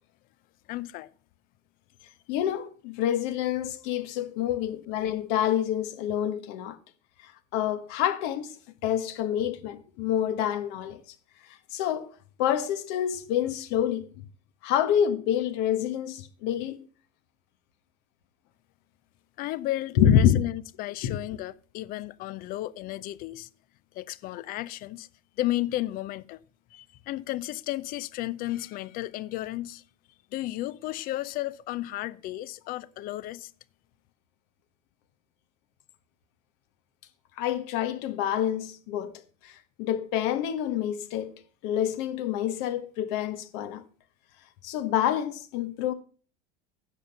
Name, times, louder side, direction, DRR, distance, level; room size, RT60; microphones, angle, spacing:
voice 1, 0.7-1.1 19.4-23.5 23.9-25.1 25.4-26.4 26.7-29.8 30.3-33.5, left 16 dB, 50° left, 0.6 m, -33 dB
voice 2, 2.3-6.8 7.5-11.0 11.7-12.1 12.4-14.0 14.6-16.8 20.0-20.4 21.0-21.2 37.4-39.1 39.8-41.3 41.6-43.8 44.6-45.9, left 10 dB, 65° left, 1.1 m, -27 dB
10.0 x 6.9 x 5.5 m
supercardioid pair, 105°, 19 cm